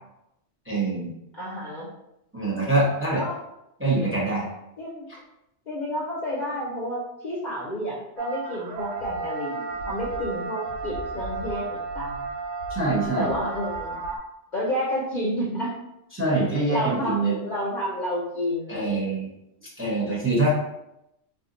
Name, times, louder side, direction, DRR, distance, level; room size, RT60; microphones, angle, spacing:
voice 1, 0.7-1.1 2.3-3.2 3.8-4.5 12.7-13.3 16.1-17.4 18.7-19.3 19.8-20.5, right 2 dB, 15° right, -5 dB, 0.7 m, -24 dB
voice 2, 1.4-1.9 3.2-3.4 4.8-5.0 5.7-12.3 13.2-14.0 14.5-15.7 16.3-19.0, equal, 50° left, -5 dB, 0.6 m, -30 dB
sound 1, 8.2-14.2, right 3 dB, 80° right, 0.9 m, -33 dB
2.7 x 2.4 x 3.7 m, 0.86 s
omnidirectional pair, 1.2 m